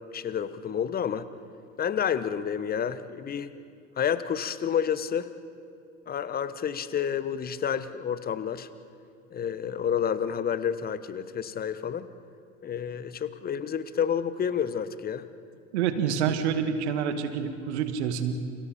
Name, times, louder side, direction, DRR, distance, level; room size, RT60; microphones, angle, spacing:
voice 1, 0.1-1.3 1.8-3.5 4.0-5.3 6.1-8.7 9.3-12.1 12.6-15.3, left 8 dB, 25° left, 14 dB, 1.2 m, -29 dB
voice 2, 15.7-18.3, right 7 dB, 60° right, 8 dB, 2.1 m, -27 dB
29.5 x 29.0 x 4.4 m, 2.3 s
figure-of-eight pair, 75°, 37 cm